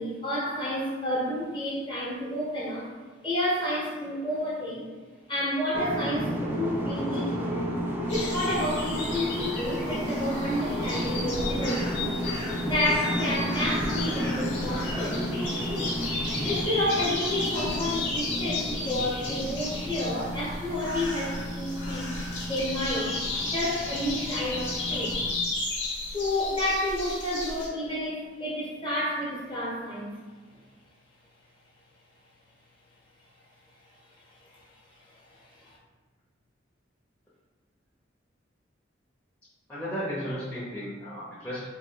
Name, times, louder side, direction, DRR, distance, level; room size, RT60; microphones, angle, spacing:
voice 1, 0.0-2.9 3.2-4.9 5.3-7.7 8.1-12.1 12.7-15.2 16.4-23.2 23.5-25.2 26.1-30.2 34.5-34.6 35.1-35.8, left 1 dB, 25° left, -5 dB, 1.1 m, -30 dB
sound 1, 5.7-25.3, equal, 10° right, 0.5 m, -32 dB
sound 2, 8.1-27.7, left 2 dB, 80° left, 1.1 m, -34 dB
voice 2, 39.7-41.7, equal, 10° left, -10 dB, 0.8 m, -34 dB
3.9 x 2.8 x 4.5 m, 1.4 s
head